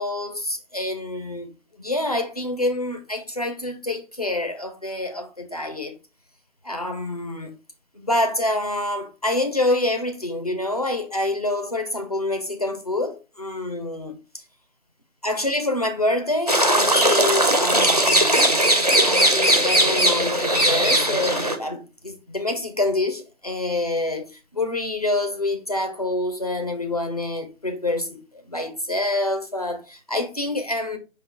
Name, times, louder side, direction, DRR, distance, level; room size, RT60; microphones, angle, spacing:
voice 1, 0.0-1.5 1.8-5.9 6.6-7.6 7.9-14.2 15.2-18.5 19.0-31.0, left 2 dB, 35° left, 0.5 m, -26 dB
sound 1, 16.5-21.6, right 1 dB, 35° right, 0.4 m, -19 dB
5.5 x 2.2 x 3.7 m
figure-of-eight pair, 160°, 36 cm